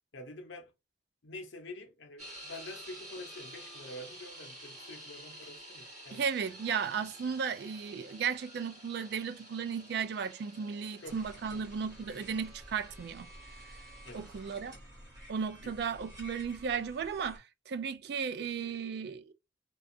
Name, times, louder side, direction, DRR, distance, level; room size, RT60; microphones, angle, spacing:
voice 1, 0.1-0.7 1.2-6.2 11.0-11.2 11.5-11.6 14.0-14.3 15.6-15.7, left 1 dB, 80° left, 0.7 m, -47 dB
sound 1, 2.2-14.7, right 1 dB, 40° right, 1.4 m, -51 dB
voice 2, 6.1-13.3 14.1-14.8 15.3-19.3, right 6 dB, 60° right, 0.3 m, -35 dB
sound 2, 11.0-17.4, right 1 dB, 20° right, 1.1 m, -52 dB
2.4 x 2.3 x 2.6 m
head